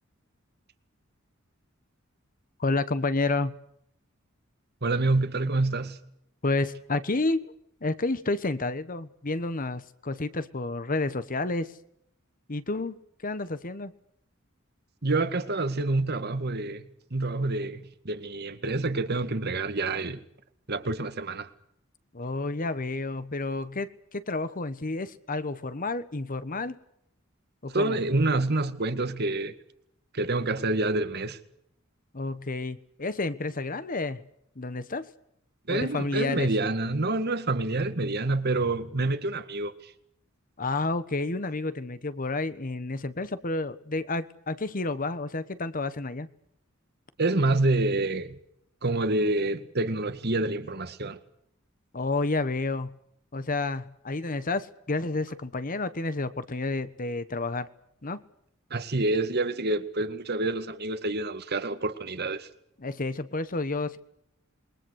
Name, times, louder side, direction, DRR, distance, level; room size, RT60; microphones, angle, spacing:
voice 1, 2.6-3.6 6.4-7.5 7.8-11.7 12.5-13.9 22.1-26.8 27.6-28.0 32.1-34.2 34.6-35.1 35.7-36.5 40.6-46.3 51.9-53.0 53.3-57.7 58.0-58.2 62.8-64.0, left 3 dB, 40° left, 1.2 m, -30 dB
voice 2, 4.8-6.0 15.0-20.2 20.7-21.5 27.7-29.5 30.1-31.4 35.7-39.7 47.2-48.4 48.8-51.2 58.7-62.5, right 2 dB, 50° right, 2.0 m, -27 dB
27.5 x 22.0 x 6.5 m
head